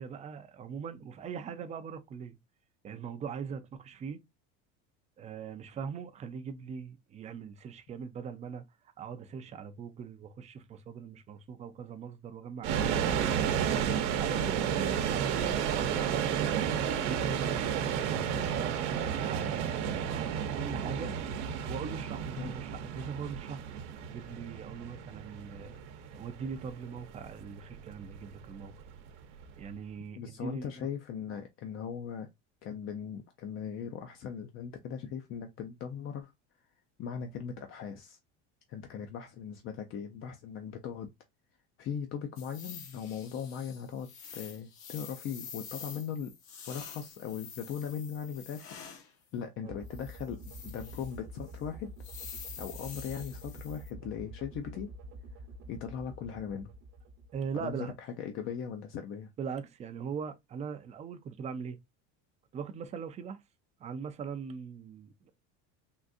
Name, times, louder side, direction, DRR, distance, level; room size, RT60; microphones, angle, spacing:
voice 1, 0.0-2.4 2.8-4.2 5.2-8.6 9.0-13.7 14.2-16.6 17.0-18.9 19.2-21.1 21.7-23.6 24.1-25.7 26.1-28.7 29.6-30.7 49.6-49.7 57.3-57.9 59.4-61.8 62.5-63.4 63.8-65.3, right 6 dB, 20° right, 0.4 m, -41 dB
sound 1, 12.6-29.6, right 8 dB, 85° right, 0.8 m, -32 dB
voice 2, 30.2-32.3 32.6-36.3 37.0-38.2 38.7-41.1 41.8-46.3 46.7-48.8 49.3-51.9 52.6-54.9 55.7-56.7 57.5-59.3, left 7 dB, 35° left, 0.5 m, -39 dB
sound 2, 42.4-49.1 49.9-51.2 51.5-51.6 52.0-53.9, left 6 dB, 65° left, 1.2 m, -47 dB
sound 3, 49.7-57.9, right 1 dB, 55° right, 1.0 m, -47 dB
3.7 x 2.5 x 2.4 m
cardioid pair, 140°, 35 cm